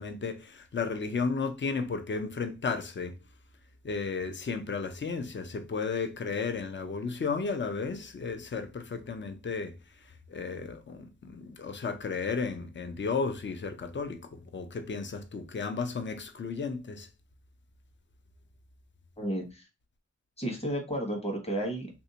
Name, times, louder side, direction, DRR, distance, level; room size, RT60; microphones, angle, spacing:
voice 1, 0.0-3.2 3.8-9.8 10.3-17.1, left 4 dB, 40° left, 0.5 m, -33 dB
voice 2, 19.2-19.6 20.4-21.9, right 1 dB, 20° left, 1.1 m, -32 dB
3.3 x 2.7 x 2.7 m
wide cardioid pair, 95°, 29 cm